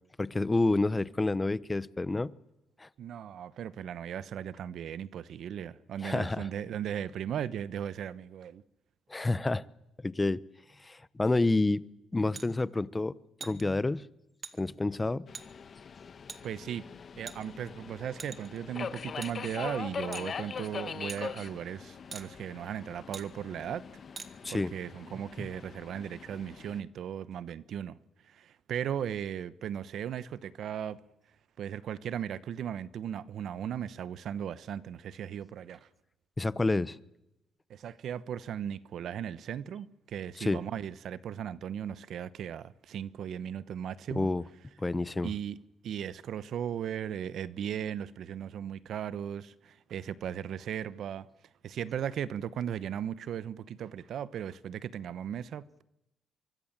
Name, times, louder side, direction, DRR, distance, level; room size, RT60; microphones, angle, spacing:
voice 1, 0.2-2.3 2.8-2.9 6.0-6.5 9.1-9.6 10.0-10.4 10.8-11.8 12.1-13.1 13.4-14.0 14.6-15.3 24.4-24.7 36.4-37.0 40.4-40.6 44.1-44.4 44.8-45.3, left 2 dB, 20° left, 0.9 m, -28 dB
voice 2, 3.0-8.6 16.4-16.9 17.2-23.8 24.5-28.0 28.2-31.0 31.6-35.9 37.7-44.3 45.2-45.6 45.8-51.3 51.6-55.8, right 9 dB, 70° right, 0.9 m, -37 dB
sound 1, 12.3-12.5 13.4-13.6 14.4-14.5 15.3-15.5 16.3-16.4 17.3-17.7 18.2-18.6 19.2-19.3 20.1-20.3 21.1-21.2 22.1-22.3 23.1-23.3 24.2-24.3, right 5 dB, 40° right, 1.9 m, -43 dB
Subway metro underground, 15.3-26.8, left 6 dB, 45° left, 1.2 m, -42 dB
24.5 x 24.0 x 7.4 m
cardioid pair, 90°, 0 cm